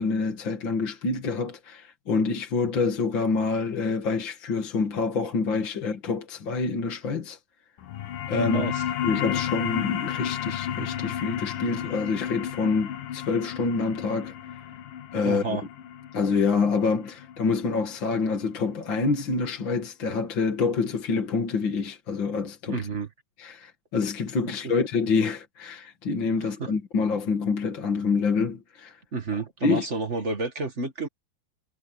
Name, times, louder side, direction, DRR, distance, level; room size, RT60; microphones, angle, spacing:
voice 1, 0.0-7.4 8.3-8.7 9.0-14.6 15.1-15.6 16.1-22.8 23.4-29.0 29.6-29.9, left 4 dB, 40° left, 2.4 m, -27 dB
sound 1, 7.8-18.9, left 10 dB, 70° left, 3.1 m, -33 dB
voice 2, 15.2-15.6 22.7-23.1 24.6-24.7 26.4-26.7 29.1-31.1, right 3 dB, 35° right, 1.2 m, -30 dB
omnidirectional pair, 3.9 m